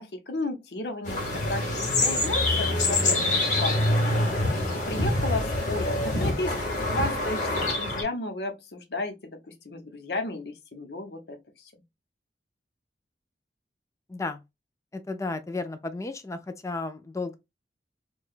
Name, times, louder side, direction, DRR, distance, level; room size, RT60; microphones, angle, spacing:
voice 1, 0.0-11.7, left 2 dB, 65° left, 0.8 m, -34 dB
sound 1, 1.0-8.0, left 2 dB, 45° left, 1.3 m, -25 dB
voice 2, 14.1-14.4 14.9-17.4, left 3 dB, 15° left, 0.4 m, -33 dB
4.6 x 2.3 x 2.4 m
head